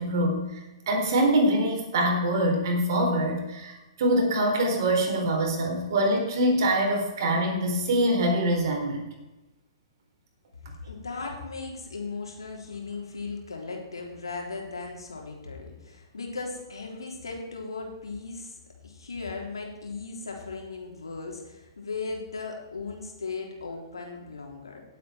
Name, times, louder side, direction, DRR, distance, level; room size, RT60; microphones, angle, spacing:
voice 1, 0.0-9.1, right 1 dB, 55° right, 1 dB, 4.2 m, -24 dB
voice 2, 10.6-24.8, left 4 dB, 80° left, 0 dB, 3.7 m, -37 dB
18.0 x 8.3 x 4.5 m, 1.1 s
figure-of-eight pair, 115°, 3 cm